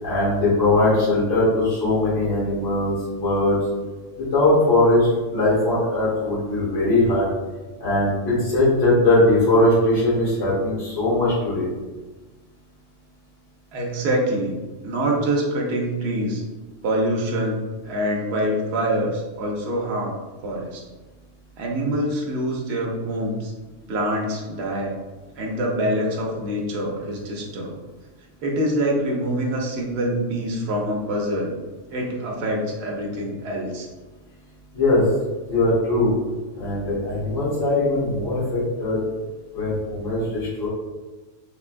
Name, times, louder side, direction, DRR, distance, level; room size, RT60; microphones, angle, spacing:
voice 1, 0.0-3.6 4.1-7.3 7.8-11.7 34.7-35.0 35.5-36.1 36.6-39.0 39.5-40.7, left 2 dB, 75° left, -7 dB, 1.6 m, -20 dB
voice 2, 13.7-14.5 14.8-16.4 16.8-20.8 21.6-23.5 23.9-24.9 25.4-27.8 28.4-31.5 31.9-33.9, right 1 dB, 65° right, -1 dB, 0.9 m, -25 dB
3.8 x 2.2 x 2.4 m, 1.2 s
omnidirectional pair, 1.2 m